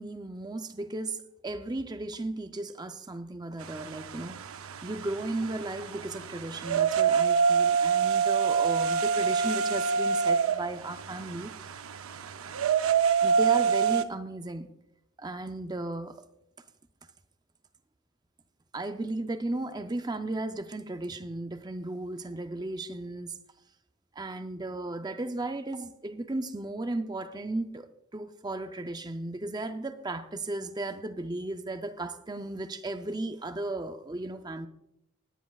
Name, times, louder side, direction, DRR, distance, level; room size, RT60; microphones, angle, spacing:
voice 1, 0.0-4.4 4.8-11.5 13.2-14.7 15.2-16.3 18.7-23.4 24.1-34.7, right 2 dB, 20° right, 0.5 m, -35 dB
sound 1, 3.6-14.0, right 6 dB, 70° right, 0.6 m, -27 dB
19.0 x 10.5 x 2.3 m
head